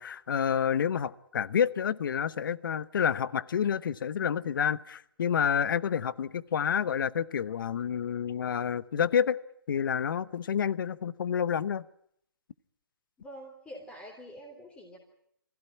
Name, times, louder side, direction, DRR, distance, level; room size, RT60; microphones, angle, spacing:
voice 1, 0.0-9.4 9.7-11.8, left 8 dB, 60° left, 18 dB, 0.9 m, -29 dB
voice 2, 13.2-15.0, equal, 10° left, -3 dB, 3.5 m, -46 dB
23.0 x 16.0 x 9.8 m, 0.72 s
hypercardioid pair, 145°, 12 cm